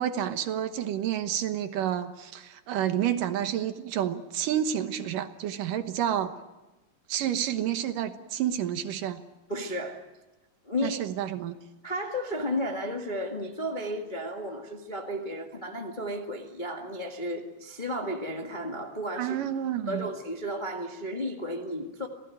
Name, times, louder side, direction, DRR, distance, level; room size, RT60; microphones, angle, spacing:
voice 1, 0.0-6.3 7.1-9.2 10.8-11.5 19.2-20.1, right 10 dB, 70° right, 9 dB, 2.6 m, -29 dB
voice 2, 9.5-10.0 10.6-11.0 11.8-19.4 19.9-22.1, equal, 25° left, 2 dB, 1.0 m, -33 dB
27.0 x 18.0 x 9.1 m, 1.1 s
omnidirectional pair, 4.1 m